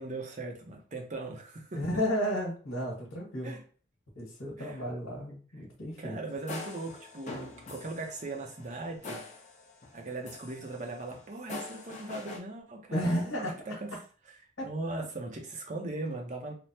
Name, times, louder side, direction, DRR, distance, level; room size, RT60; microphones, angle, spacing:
voice 1, 0.0-1.8 3.4-3.6 4.6-4.9 6.0-9.2 9.9-13.9 14.6-16.5, right 2 dB, 35° right, 2 dB, 0.5 m, -39 dB
voice 2, 1.7-3.5 4.2-6.2 12.9-13.6 14.6-14.7, equal, 85° left, -3 dB, 1.2 m, -32 dB
sound 1, 6.3-10.0 10.2-12.4, left 2 dB, 35° left, 0.6 m, -44 dB
3.3 x 2.0 x 2.7 m, 0.39 s
head